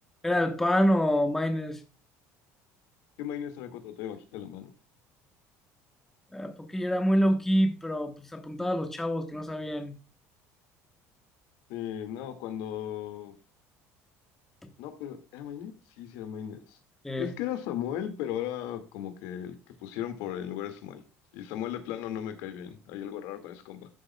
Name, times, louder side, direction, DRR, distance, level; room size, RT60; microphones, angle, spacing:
voice 1, 0.2-1.8 6.3-10.0 14.6-14.7 17.0-17.3, equal, 5° left, 6 dB, 1.0 m, -27 dB
voice 2, 3.2-4.7 11.7-13.3 14.8-16.8 17.2-19.6 19.8-21.0 21.3-23.9, left 10 dB, 80° left, 8 dB, 1.9 m, -36 dB
13.0 x 7.2 x 2.2 m, 0.32 s
cardioid pair, 165°, 6 cm